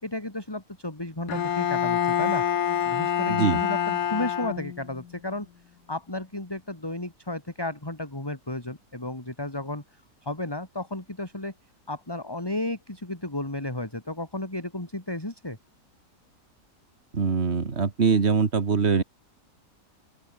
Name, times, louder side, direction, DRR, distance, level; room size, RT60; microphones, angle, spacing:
voice 1, 0.0-2.6 2.8-5.5 5.9-9.8 10.2-11.5 11.9-15.6, left 2 dB, 15° left, 3.1 m, -33 dB
Bowed string instrument, 1.3-5.0, left 9 dB, 85° left, 1.7 m, -26 dB
voice 2, 3.3-3.6 17.1-19.0, right 5 dB, 40° right, 2.2 m, -23 dB
open air
omnidirectional pair, 1.7 m